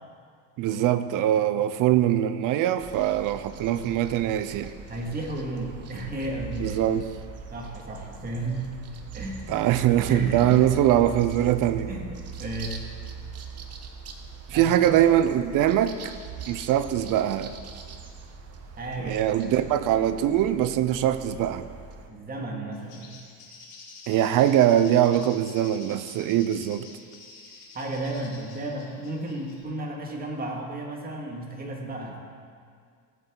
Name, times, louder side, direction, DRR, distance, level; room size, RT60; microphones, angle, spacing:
voice 1, 0.6-4.7 6.6-7.1 9.5-11.9 14.5-16.1 16.5-17.5 19.0-21.7 24.1-26.9, right 11 dB, 60° right, 12 dB, 0.7 m, -22 dB
sound 1, 2.8-22.1, right 5 dB, 45° right, 1.1 m, -41 dB
voice 2, 4.9-6.8 7.5-8.7 9.1-9.5 10.1-10.7 11.9-12.8 14.5-14.9 18.8-19.7 22.1-23.1 27.7-32.2, right 2 dB, 25° right, -1 dB, 2.2 m, -33 dB
Bird, 22.7-29.6, left 4 dB, 65° left, 3.4 m, -48 dB
18.0 x 8.0 x 3.9 m, 2.1 s
cardioid pair, 120°, 36 cm